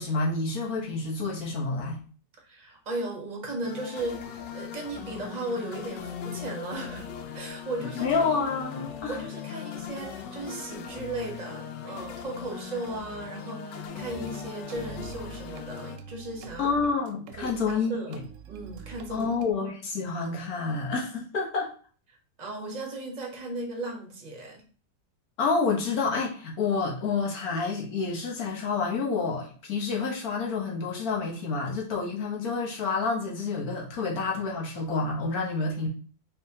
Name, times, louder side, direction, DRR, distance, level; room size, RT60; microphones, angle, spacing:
voice 1, 0.0-2.0 7.8-9.2 16.6-18.2 19.1-21.7 25.4-35.9, left 4 dB, 60° left, -1 dB, 1.5 m, -28 dB
voice 2, 2.5-8.5 9.1-16.7 17.4-18.2 18.5-19.3 22.4-24.7, right 2 dB, 30° right, 1 dB, 0.9 m, -36 dB
sound 1, 3.6-16.0, left 7 dB, 80° left, 1.2 m, -39 dB
sound 2, 14.1-14.3 14.7-17.8 18.1-19.5, right 6 dB, 70° right, 0.7 m, -45 dB
4.1 x 3.7 x 2.8 m, 0.40 s
omnidirectional pair, 1.9 m